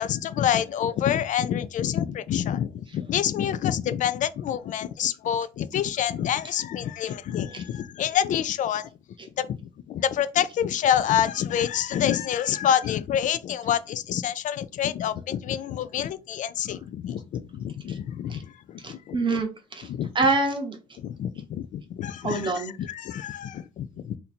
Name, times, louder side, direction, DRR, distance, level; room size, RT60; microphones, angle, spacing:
voice 1, 0.0-8.9 9.4-9.6 9.9-19.2 19.9-20.1 21.0-24.2, left 10 dB, 50° left, 0.4 m, -27 dB
voice 2, 18.8-19.9 20.1-20.8 22.2-22.7, right 3 dB, 30° right, 0.8 m, -26 dB
2.8 x 2.6 x 4.1 m
cardioid pair, 110°, 17 cm